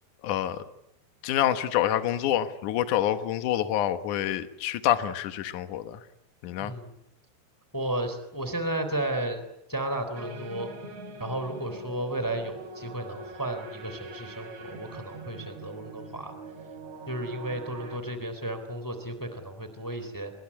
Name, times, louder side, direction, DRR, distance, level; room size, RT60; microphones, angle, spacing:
voice 1, 0.2-0.6 1.2-6.0 6.4-6.7, left 11 dB, 70° left, 10 dB, 1.9 m, -27 dB
voice 2, 6.6-7.0 7.7-9.4 9.7-10.7 11.2-16.3 17.1-20.3, right 1 dB, 5° left, 9 dB, 2.6 m, -33 dB
sound 1, 10.2-18.0, right 2 dB, 40° right, 3.7 m, -43 dB
28.5 x 21.0 x 9.9 m, 0.85 s
omnidirectional pair, 5.4 m